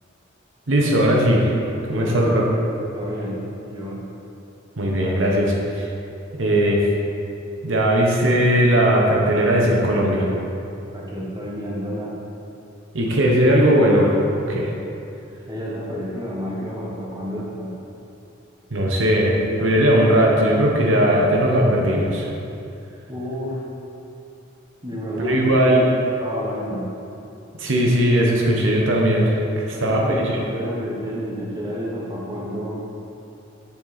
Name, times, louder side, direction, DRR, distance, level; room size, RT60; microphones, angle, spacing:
voice 1, 0.7-1.6 1.9-2.4 4.8-5.9 6.3-6.8 7.6-10.3 12.9-14.7 18.7-22.3 25.2-25.9 27.6-30.0, equal, 75° right, -2 dB, 1.1 m, -18 dB
voice 2, 1.9-2.3 2.9-4.0 10.9-12.1 15.5-17.8 23.1-23.6 24.8-25.5 26.2-26.9 29.7-32.8, equal, 20° right, -5 dB, 1.3 m, -30 dB
7.4 x 7.1 x 4.2 m, 2.7 s
head